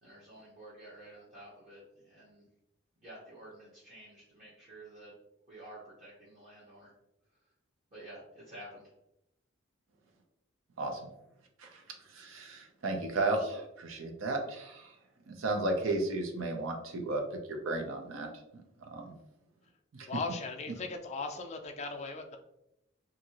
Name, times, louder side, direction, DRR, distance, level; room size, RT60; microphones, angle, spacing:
voice 1, 0.0-2.5 3.0-5.1 5.5-6.9 7.9-8.9, right 1 dB, 40° right, -9 dB, 0.8 m, -51 dB
voice 2, 10.8-11.1 11.6-11.8 12.1-14.9 15.3-17.2 17.5-18.3 18.5-19.1, right 2 dB, 90° right, 3 dB, 0.6 m, -34 dB
voice 3, 20.1-22.4, left 3 dB, 35° left, 4 dB, 0.4 m, -38 dB
2.7 x 2.6 x 2.8 m, 0.84 s
head